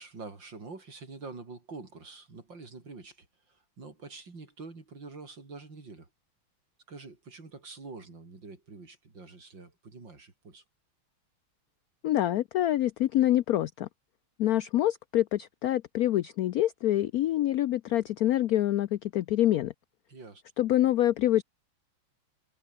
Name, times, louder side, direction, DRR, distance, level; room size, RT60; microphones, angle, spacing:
voice 1, 0.0-6.1 6.9-10.6 20.1-20.4, right 3 dB, 60° right, 5.0 m, -46 dB
voice 2, 12.0-13.9 14.4-19.7 20.6-21.4, left 13 dB, 90° left, 0.8 m, -26 dB
omnidirectional pair, 2.2 m